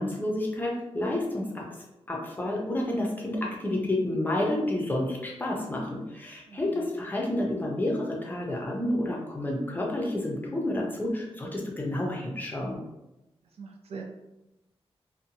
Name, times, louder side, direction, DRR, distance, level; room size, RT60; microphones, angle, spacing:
voice 1, 0.0-1.6 2.1-12.8, left 1 dB, 20° left, -1 dB, 0.5 m, -30 dB
voice 2, 6.5-6.9 13.6-14.0, right 5 dB, 85° right, 0 dB, 0.5 m, -42 dB
2.6 x 2.2 x 2.7 m, 0.96 s
wide cardioid pair, 145°, 10 cm